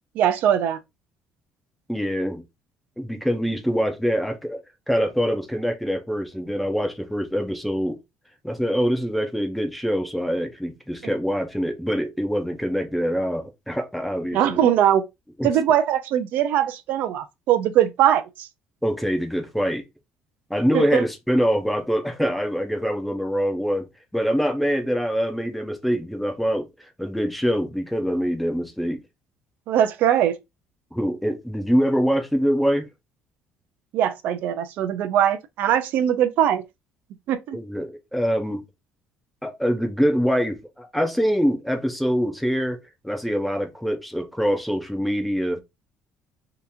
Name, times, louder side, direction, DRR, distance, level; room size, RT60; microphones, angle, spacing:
voice 1, 0.1-0.8 14.3-15.0 15.4-18.5 20.7-21.0 29.7-30.4 33.9-36.6 37.3-37.6, right 10 dB, 55° right, 0.5 m, -21 dB
voice 2, 1.9-2.4 3.0-4.6 4.9-8.0 8.4-14.7 15.4-15.5 18.8-19.8 20.5-23.9 24.1-26.7 27.0-29.0 30.9-32.9 37.5-38.6 39.4-45.6, equal, ahead, 0.5 m, -24 dB
2.9 x 2.5 x 3.5 m
cardioid pair, 165°, 3 cm